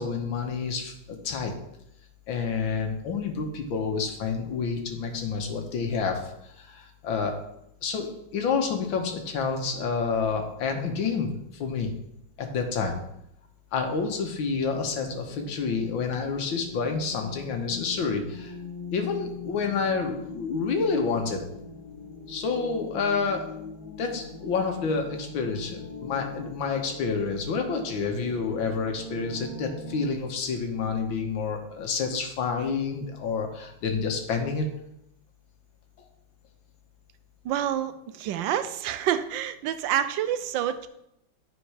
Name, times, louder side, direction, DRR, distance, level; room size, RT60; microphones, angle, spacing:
voice 1, 0.0-1.5 2.3-7.4 7.8-8.1 8.3-11.9 12.4-13.0 13.7-18.6 18.9-21.4 22.3-23.4 24.0-34.7, left 5 dB, 80° left, 4 dB, 1.9 m, -29 dB
sound 1, 15.2-30.1, left 3 dB, 45° left, 2.6 m, -42 dB
voice 2, 37.4-40.9, right 10 dB, 75° right, 11 dB, 1.3 m, -28 dB
9.4 x 4.5 x 4.8 m, 0.79 s
omnidirectional pair, 2.1 m